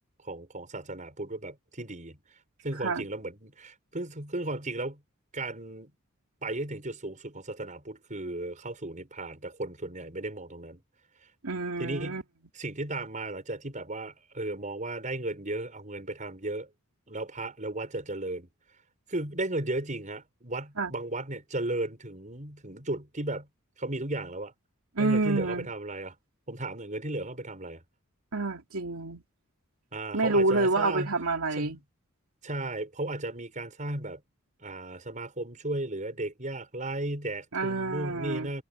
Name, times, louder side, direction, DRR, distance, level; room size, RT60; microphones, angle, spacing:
voice 1, 0.2-2.2 2.6-5.0 5.3-5.9 6.4-10.8 11.8-12.2 12.5-16.7 17.1-18.5 19.1-23.5 23.8-24.5 25.0-26.1 26.5-27.8 29.9-31.2 31.6-31.8 32.4-34.2 34.6-38.6, right 2 dB, 35° right, 6.3 m, -35 dB
voice 2, 11.4-12.2 20.8-20.9 25.0-25.7 28.3-29.2 30.1-31.8 37.5-38.5, right 3 dB, 90° right, 2.6 m, -28 dB
head